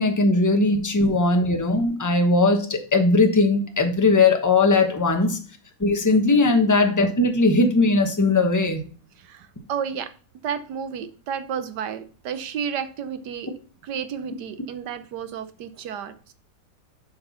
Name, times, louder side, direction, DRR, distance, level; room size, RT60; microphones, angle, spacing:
voice 1, 0.0-5.4 5.8-8.8, left 3 dB, 15° left, 5 dB, 0.7 m, -19 dB
voice 2, 9.2-10.1 10.4-13.5 13.8-16.3, right 7 dB, 70° right, 11 dB, 1.4 m, -31 dB
7.8 x 4.7 x 5.6 m, 0.38 s
omnidirectional pair, 2.0 m